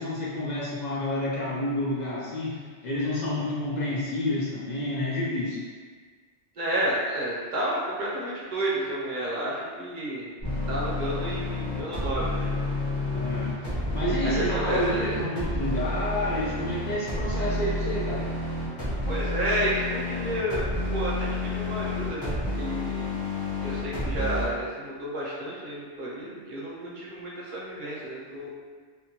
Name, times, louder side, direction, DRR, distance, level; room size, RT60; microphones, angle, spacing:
voice 1, 0.0-5.6 13.1-13.7 13.9-18.3, left 1 dB, 60° left, -6 dB, 0.4 m, -29 dB
voice 2, 6.6-10.3 10.7-12.5 14.2-15.2 19.1-20.6 20.9-23.0 23.6-28.5, right 1 dB, 50° right, -5 dB, 0.7 m, -31 dB
sound 1, 10.4-24.5, left 1 dB, 25° left, 0.7 m, -30 dB
2.7 x 2.2 x 2.7 m, 1.6 s
omnidirectional pair, 1.2 m